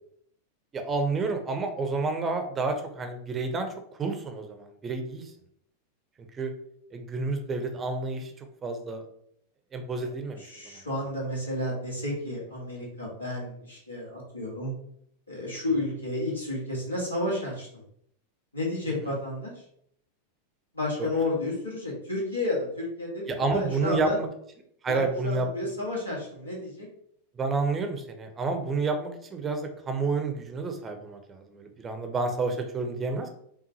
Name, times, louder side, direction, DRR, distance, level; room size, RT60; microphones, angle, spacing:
voice 1, 0.7-3.7 4.0-5.3 6.4-6.5 6.9-9.0 9.7-10.8 21.0-21.1 23.3-24.3 24.8-25.5 27.4-33.3, right 3 dB, 20° right, 5 dB, 0.6 m, -30 dB
voice 2, 10.4-14.7 15.3-17.7 18.5-19.5 20.7-24.2 24.9-26.9, left 1 dB, 80° left, -4 dB, 1.5 m, -31 dB
5.3 x 2.4 x 2.8 m, 0.70 s
figure-of-eight pair, 90°, 0 cm